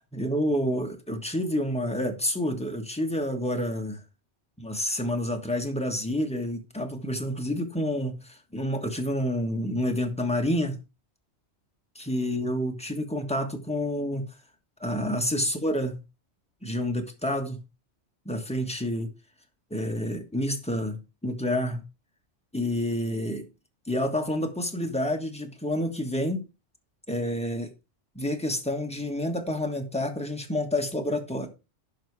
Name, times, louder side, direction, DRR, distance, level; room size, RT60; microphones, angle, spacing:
voice 1, 0.1-4.0 4.6-10.8 11.9-14.3 14.8-15.9 16.6-17.6 18.2-19.1 19.7-21.8 22.5-23.4 23.9-26.4 27.1-27.7 28.1-31.5, left 1 dB, 5° left, 1.5 m, -29 dB
10.5 x 5.7 x 4.8 m
omnidirectional pair, 1.2 m